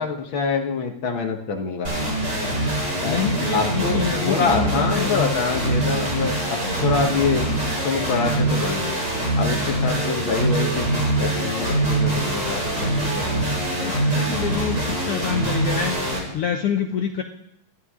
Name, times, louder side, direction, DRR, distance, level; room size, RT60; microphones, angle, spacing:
voice 1, 0.0-1.9 3.0-3.2 3.5-7.5 7.8-8.9 9.4-13.7, left 5 dB, 50° left, 3 dB, 1.7 m, -26 dB
sound 1, 1.8-16.2, right 1 dB, 30° right, 6.6 m, -24 dB
voice 2, 3.0-5.3 13.1-13.2 13.8-16.0 16.3-17.2, left 8 dB, 70° left, 4 dB, 1.4 m, -26 dB
27.5 x 11.0 x 3.7 m, 0.77 s
omnidirectional pair, 3.6 m